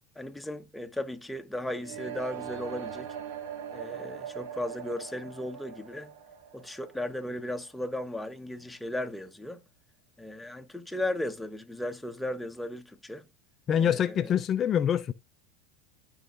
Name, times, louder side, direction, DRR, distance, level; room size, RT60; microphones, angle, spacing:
voice 1, 0.2-3.1 3.7-6.1 6.5-9.6 10.2-13.3 13.8-14.3, left 1 dB, 5° left, 1.1 m, -36 dB
sound 1, 1.8-7.7, right 8 dB, 70° right, 1.3 m, -41 dB
voice 2, 13.7-15.1, left 9 dB, 35° left, 0.5 m, -25 dB
12.5 x 4.8 x 2.6 m
hypercardioid pair, 90°, 0 cm